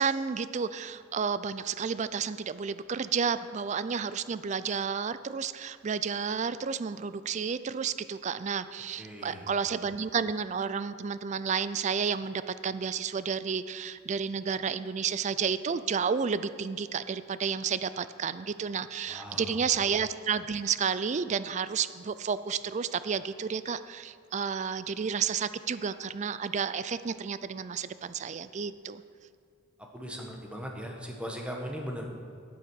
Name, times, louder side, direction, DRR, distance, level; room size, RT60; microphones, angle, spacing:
voice 1, 0.0-29.0, right 6 dB, 35° right, 14 dB, 0.4 m, -31 dB
voice 2, 9.0-9.5 19.0-19.7 29.9-32.1, equal, 5° right, 1 dB, 1.2 m, -39 dB
9.3 x 8.6 x 6.2 m, 2.3 s
head